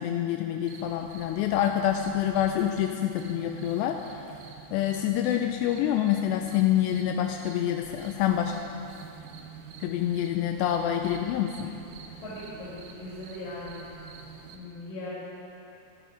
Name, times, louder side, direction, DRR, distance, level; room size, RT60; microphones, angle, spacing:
voice 1, 0.0-4.2 4.7-8.6 9.8-11.7, left 11 dB, 85° left, 4 dB, 2.9 m, -27 dB
sound 1, 0.7-14.6, right 6 dB, 70° right, 2.1 m, -47 dB
voice 2, 12.2-13.8 14.5-15.1, left 1 dB, 55° left, -11 dB, 5.4 m, -39 dB
20.5 x 11.5 x 5.1 m, 2.7 s
omnidirectional pair, 5.0 m